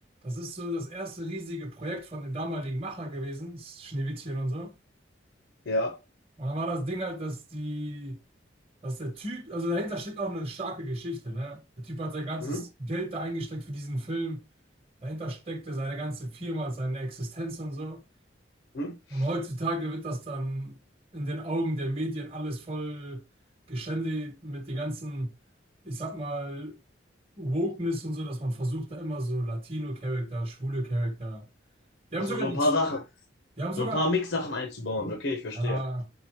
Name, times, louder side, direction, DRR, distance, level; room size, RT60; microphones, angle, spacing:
voice 1, 0.2-4.7 6.4-8.2 8.8-14.4 15.0-18.0 19.1-20.8 21.1-23.2 23.7-25.3 25.8-26.8 27.4-31.5 32.1-32.7 33.6-34.0 35.5-36.1, right 1 dB, 30° right, 1.0 m, -33 dB
voice 2, 5.7-6.0 12.4-12.6 18.7-19.2 32.3-33.0 33.8-35.8, left 2 dB, 85° left, 1.0 m, -29 dB
6.3 x 5.0 x 3.0 m
head